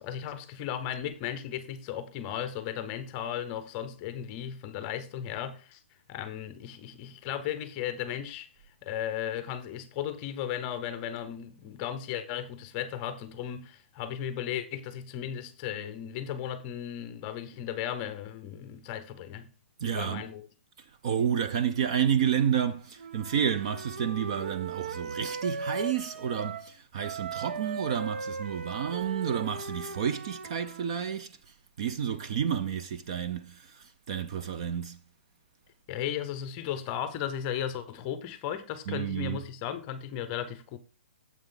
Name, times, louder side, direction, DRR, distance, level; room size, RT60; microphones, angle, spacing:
voice 1, 0.0-5.8 6.1-8.5 8.8-19.5 19.9-20.4 35.9-40.8, left 10 dB, 15° left, 0.7 m, -35 dB
voice 2, 19.8-20.3 21.0-35.0 38.9-39.4, right 8 dB, 25° right, 0.4 m, -30 dB
Wind instrument woodwind instrument, 23.0-26.7 27.0-31.0, right 5 dB, 75° right, 1.2 m, -38 dB
9.0 x 7.3 x 3.8 m
hypercardioid pair, 175°, 7 cm